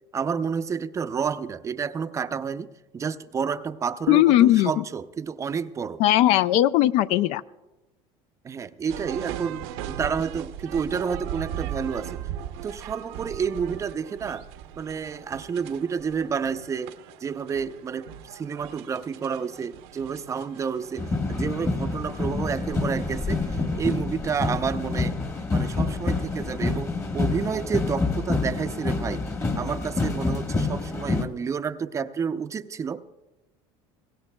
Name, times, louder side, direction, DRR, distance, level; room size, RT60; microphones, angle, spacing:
voice 1, 0.1-6.0 8.4-12.1 12.6-14.5 14.8-17.0 17.2-23.4 23.7-25.1 25.5-29.3 29.6-33.0, right 6 dB, 25° right, 12 dB, 0.5 m, -30 dB
voice 2, 4.1-4.8 6.0-7.4, left 14 dB, 60° left, 16 dB, 0.4 m, -18 dB
sound 1, 8.9-28.3, right 10 dB, 80° right, 0.9 m, -40 dB
sound 2, 21.0-31.2, left 3 dB, 25° left, 1.3 m, -27 dB
23.5 x 16.5 x 2.2 m, 1.0 s
supercardioid pair, 120°, 12 cm